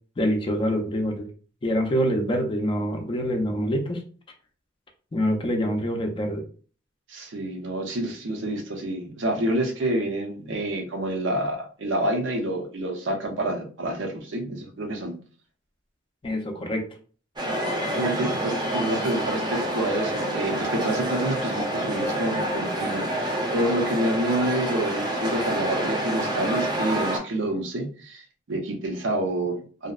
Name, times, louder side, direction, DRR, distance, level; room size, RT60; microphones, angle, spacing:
voice 1, 0.2-1.3 1.6-4.0 5.1-6.4 16.2-16.9, equal, 25° left, 3 dB, 0.4 m, -25 dB
voice 2, 7.1-15.2 17.8-29.9, right 1 dB, 75° right, 2 dB, 0.6 m, -28 dB
sound 1, 17.4-27.2, right 1 dB, 25° right, 0.6 m, -27 dB
2.6 x 2.0 x 2.3 m, 0.41 s
head